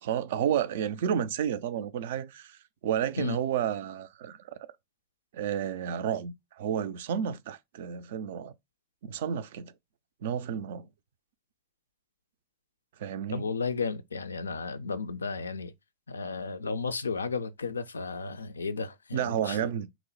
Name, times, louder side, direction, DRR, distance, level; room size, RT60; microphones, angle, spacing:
voice 1, 0.0-4.4 5.3-8.5 9.0-9.7 10.2-10.9 13.0-13.5 19.1-19.9, right 9 dB, 55° right, 0.3 m, -31 dB
voice 2, 13.3-15.7 16.1-19.7, left 4 dB, 75° left, 0.3 m, -33 dB
2.9 x 2.0 x 4.0 m
figure-of-eight pair, 90°, 0 cm